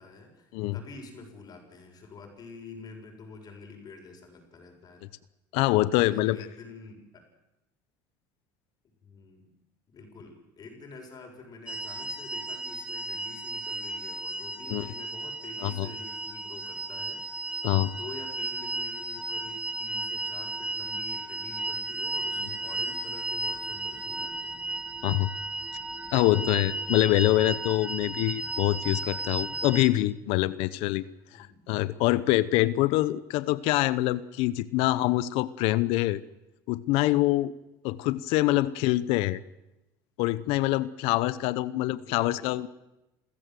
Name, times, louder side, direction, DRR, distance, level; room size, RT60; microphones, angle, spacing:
voice 1, 0.0-5.1 6.1-7.3 9.0-9.5 9.9-17.3 17.6-24.7 31.3-31.7 31.9-32.2 41.9-42.5, left 4 dB, 40° left, 3 dB, 7.2 m, -47 dB
voice 2, 5.5-6.4 14.7-14.9 15.6-15.9 17.6-17.9 25.0-25.3 26.1-31.0 31.3-36.2 36.7-37.5 37.8-39.4 40.2-42.7, left 17 dB, 75° left, 17 dB, 0.9 m, -25 dB
sound 1, 11.7-29.9, right 2 dB, 10° right, 1.9 m, -34 dB
28.5 x 15.0 x 7.9 m, 0.95 s
supercardioid pair, 100°, 10 cm